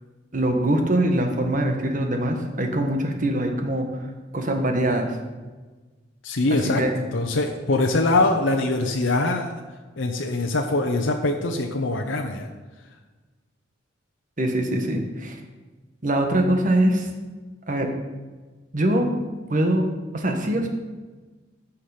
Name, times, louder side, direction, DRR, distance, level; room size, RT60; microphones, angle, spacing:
voice 1, 0.3-4.0 4.3-5.1 6.5-6.9 14.4-15.4 16.0-17.1 17.7-17.9 18.7-19.1 19.5-19.9 20.1-20.7, right 1 dB, 45° right, 4 dB, 1.4 m, -23 dB
voice 2, 6.2-6.8 7.1-9.5 10.0-12.5, left 2 dB, 85° left, 3 dB, 0.9 m, -23 dB
14.5 x 5.8 x 5.0 m, 1.3 s
head